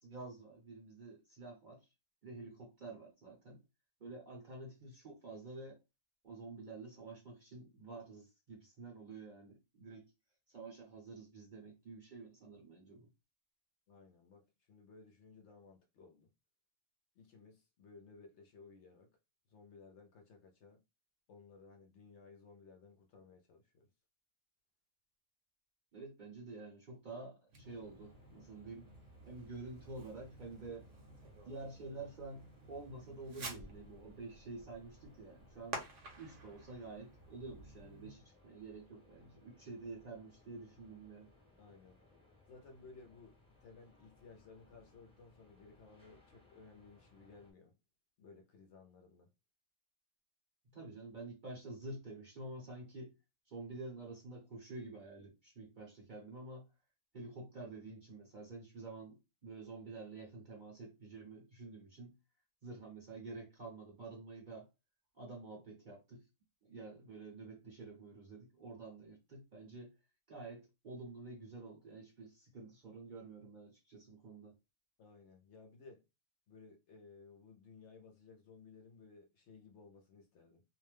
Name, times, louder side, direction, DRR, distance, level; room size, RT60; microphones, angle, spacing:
voice 1, 0.0-1.8 2.2-3.6 4.0-5.8 6.2-10.0 10.5-13.1 25.9-28.9 29.2-30.9 31.4-35.8 36.2-41.3 50.7-53.1 53.5-56.7 57.1-59.2 59.4-62.1 62.6-64.7 65.1-66.2 66.6-69.9 70.3-74.5, right 3 dB, 45° right, 0.7 m, -49 dB
voice 2, 13.9-14.4 14.7-16.3 17.2-19.1 19.5-20.8 21.3-23.9 41.6-42.0 42.5-43.3 43.6-47.7 48.2-49.3 75.0-76.0 76.5-80.6, left 4 dB, 65° left, 0.8 m, -58 dB
Fireworks, 27.5-38.2, right 3 dB, 65° right, 1.0 m, -52 dB
sound 1, 27.6-47.5, left 2 dB, 5° left, 0.7 m, -67 dB
2.5 x 2.1 x 3.2 m
omnidirectional pair, 1.5 m